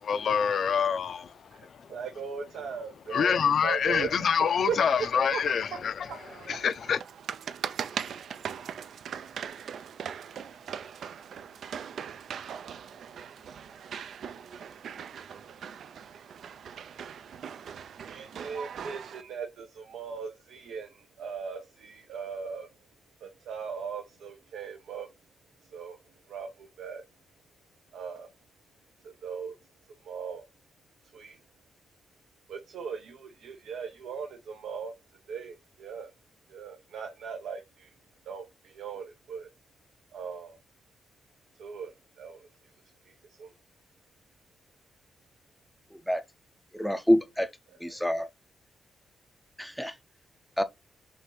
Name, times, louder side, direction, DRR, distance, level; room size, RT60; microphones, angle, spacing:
voice 1, 0.0-2.0 3.0-7.0, left 7 dB, 60° left, 0.4 m, -27 dB
voice 2, 1.9-3.4 3.6-4.3 4.7-4.8 5.3-5.4 18.1-22.7 23.2-25.1 25.7-26.0 26.3-27.0 27.9-28.3 29.2-29.5 30.1-30.5 31.1-31.3 32.5-34.9 35.3-36.1 36.5-37.9 38.3-39.5 40.1-40.6 41.6-42.4 43.4-43.5, right 6 dB, 90° right, 0.8 m, -38 dB
sound 1, 6.1-19.2, right 7 dB, 70° right, 0.3 m, -40 dB
voice 3, 45.9-46.2 46.7-47.5 47.8-48.3 49.6-49.9 50.6-50.7, equal, ahead, 0.4 m, -26 dB
6.4 x 2.5 x 3.2 m
cardioid pair, 110°, 0 cm